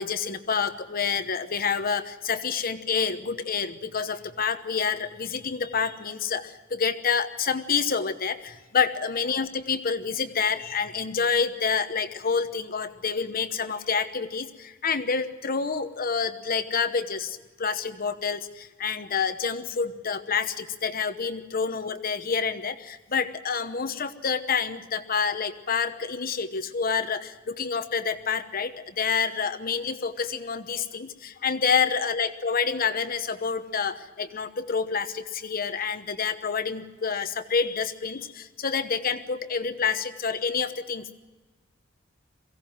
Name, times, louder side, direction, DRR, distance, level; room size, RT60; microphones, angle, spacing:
voice 1, 0.0-41.2, left 6 dB, 50° left, 10 dB, 1.0 m, -28 dB
22.5 x 16.5 x 7.7 m, 1.2 s
head